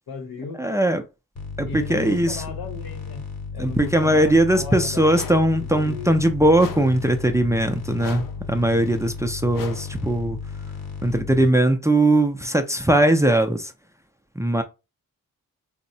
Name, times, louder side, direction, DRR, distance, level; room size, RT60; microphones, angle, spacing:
voice 1, 0.1-0.6 1.7-3.3 3.5-5.2 5.6-6.1, left 4 dB, 85° left, 0.8 m, -35 dB
voice 2, 0.6-1.0 1.6-2.4 3.6-10.4 11.0-13.7 14.4-14.6, right 1 dB, 10° right, 0.4 m, -20 dB
sound 1, 1.4-11.5, left 5 dB, 50° left, 1.0 m, -34 dB
sound 2, 5.1-5.6 6.6-7.0 8.0-8.5 9.5-10.0, left 7 dB, 65° left, 0.5 m, -38 dB
3.4 x 2.0 x 2.6 m
cardioid pair, 55°, 35 cm